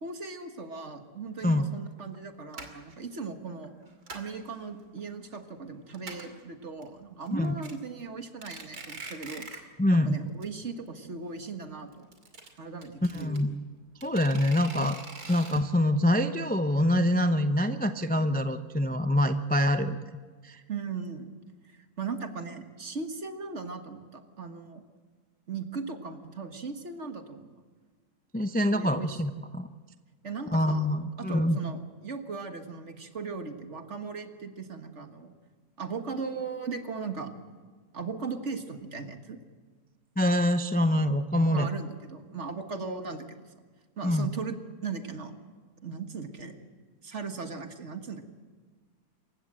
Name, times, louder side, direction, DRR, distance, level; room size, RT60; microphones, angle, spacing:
voice 1, 0.0-3.7 4.1-9.7 10.0-12.1 12.6-13.3 20.7-21.3 21.6-24.8 25.5-27.5 28.7-29.2 30.2-35.3 35.8-37.3 37.9-39.4 41.5-43.5 44.0-44.6 44.8-45.3 45.8-46.6 47.0-48.2, right 4 dB, 45° right, 6 dB, 1.9 m, -38 dB
sound 1, 1.4-1.5 2.0-2.2 2.5-2.9 3.6-4.4 4.8-5.4 5.6-5.7 5.9-6.4 6.8-6.9 7.3-7.7 8.2-9.7 10.0-10.1 10.4-10.5 10.8-10.9 11.9-13.4 14.0-15.6, right 3 dB, 70° right, 3.1 m, -43 dB
voice 2, 9.8-10.2 13.0-13.6 14.0-15.0 15.3-20.0 20.4-20.6 28.3-29.7 30.5-31.6 40.2-41.7 44.0-44.3, left 1 dB, 15° left, 8 dB, 0.3 m, -25 dB
27.5 x 15.5 x 7.6 m, 1.5 s
omnidirectional pair, 1.7 m